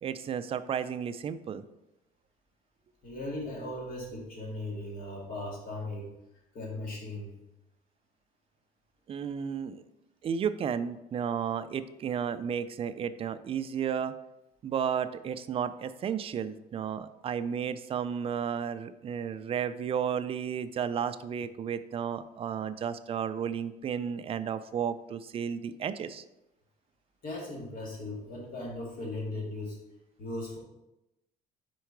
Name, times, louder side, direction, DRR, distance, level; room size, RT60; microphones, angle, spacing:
voice 1, 0.0-1.6 9.1-9.8 10.2-14.1 14.6-26.2, right 7 dB, 35° right, 11 dB, 0.4 m, -33 dB
voice 2, 3.0-6.1 6.5-7.4 27.2-29.8 30.2-30.6, left 2 dB, 55° left, -3 dB, 2.2 m, -38 dB
4.7 x 4.5 x 4.5 m, 0.92 s
cardioid pair, 110°, 17 cm